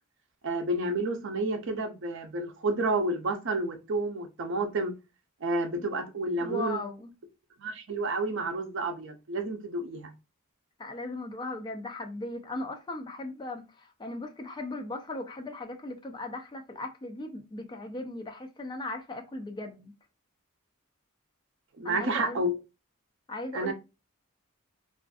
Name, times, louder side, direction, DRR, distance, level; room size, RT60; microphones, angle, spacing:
voice 1, 0.4-4.9 5.4-6.8 7.6-10.1 21.8-22.6 23.5-23.7, right 2 dB, 60° right, 0.5 m, -30 dB
voice 2, 6.4-7.1 10.8-19.9 21.8-22.4 23.3-23.7, left 2 dB, 20° left, 0.4 m, -38 dB
2.5 x 2.4 x 2.2 m
head